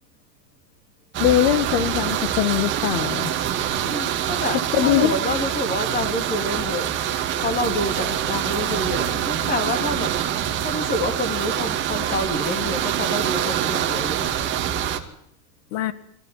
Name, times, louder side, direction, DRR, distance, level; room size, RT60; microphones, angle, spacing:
sound 1, 1.1-15.0, right 10 dB, 25° right, 2.3 m, -25 dB
voice 1, 1.2-3.3 4.7-5.2 15.7-15.9, left 11 dB, 40° left, 14 dB, 1.7 m, -21 dB
voice 2, 3.7-6.9 7.4-10.1 10.6-14.3, left 1 dB, 15° left, 7 dB, 2.9 m, -28 dB
24.5 x 15.5 x 9.9 m, 0.74 s
supercardioid pair, 170°, 49 cm